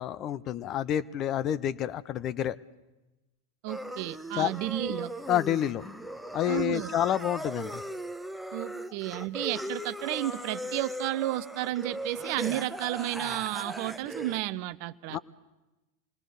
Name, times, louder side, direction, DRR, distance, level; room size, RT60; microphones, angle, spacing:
voice 1, 0.0-2.6 4.3-4.5 5.3-5.8 6.3-7.8 15.1-15.2, left 11 dB, 35° left, 16 dB, 0.7 m, -29 dB
voice 2, 3.6-5.1 6.5-6.9 8.5-15.2, right 15 dB, 50° right, 15 dB, 0.7 m, -32 dB
sound 1, 3.7-14.4, right 1 dB, 5° right, 0.9 m, -38 dB
27.0 x 20.0 x 6.6 m, 1.1 s
figure-of-eight pair, 85°, 0 cm